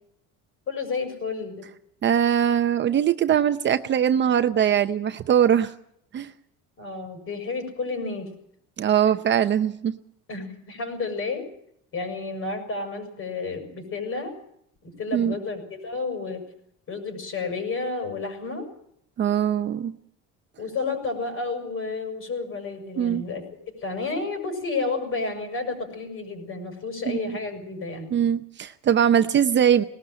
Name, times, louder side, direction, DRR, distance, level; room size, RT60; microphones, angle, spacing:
voice 1, 0.7-1.6 6.8-8.3 10.3-11.5 11.9-14.3 15.0-16.4 16.9-18.7 20.6-23.4 23.8-28.1, left 4 dB, 45° left, 6 dB, 6.7 m, -31 dB
voice 2, 2.0-5.7 6.1-6.3 8.8-10.0 15.1-15.3 19.2-19.9 23.0-23.2 27.1-27.4 28.1-29.8, right 9 dB, 35° right, 9 dB, 0.8 m, -21 dB
20.0 x 18.0 x 7.6 m, 0.71 s
cardioid pair, 140°, 31 cm